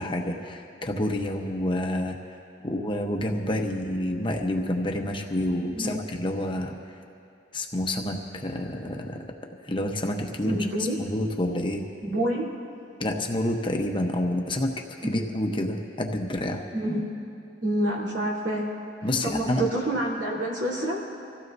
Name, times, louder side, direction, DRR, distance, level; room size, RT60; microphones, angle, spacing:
voice 1, 0.0-2.2 2.6-6.7 7.5-9.3 9.6-10.7 11.0-11.8 13.0-14.7 15.0-16.6 19.0-19.7, left 1 dB, 25° left, 2 dB, 0.9 m, -28 dB
voice 2, 10.4-11.0 12.0-12.4 15.1-15.2 16.7-17.1 17.6-18.6 19.2-21.0, right 1 dB, 80° right, -4 dB, 3.4 m, -27 dB
26.5 x 16.0 x 2.7 m, 2.6 s
head